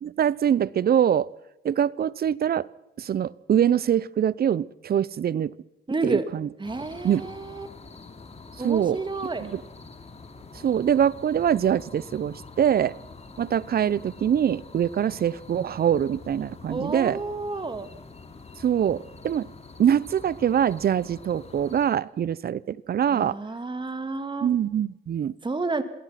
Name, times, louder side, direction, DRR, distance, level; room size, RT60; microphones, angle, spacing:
voice 1, 0.0-1.3 1.6-2.7 3.0-5.5 6.0-6.5 7.0-7.3 8.6-9.0 9.4-9.6 10.5-13.0 13.4-17.2 18.6-19.5 19.8-23.4 24.4-25.3, right 9 dB, 50° right, 22 dB, 0.8 m, -24 dB
voice 2, 5.9-6.2 6.6-7.7 8.6-9.5 16.7-17.9 23.1-24.5 25.4-25.8, right 3 dB, 25° right, 11 dB, 2.5 m, -30 dB
sound 1, 6.6-21.9, left 4 dB, 30° left, 3.3 m, -46 dB
27.0 x 19.0 x 5.9 m, 0.89 s
cardioid pair, 90°, 20 cm